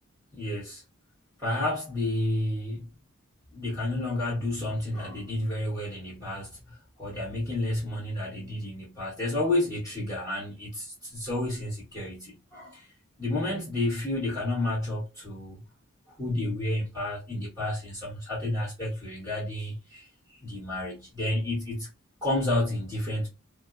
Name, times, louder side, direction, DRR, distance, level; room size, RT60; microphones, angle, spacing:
voice 1, 0.3-0.8 1.4-2.9 3.5-12.9 13.2-15.6 16.2-20.1 20.4-21.9 22.2-23.3, left 1 dB, 15° left, 1.1 m, -31 dB
4.2 x 2.1 x 2.3 m
head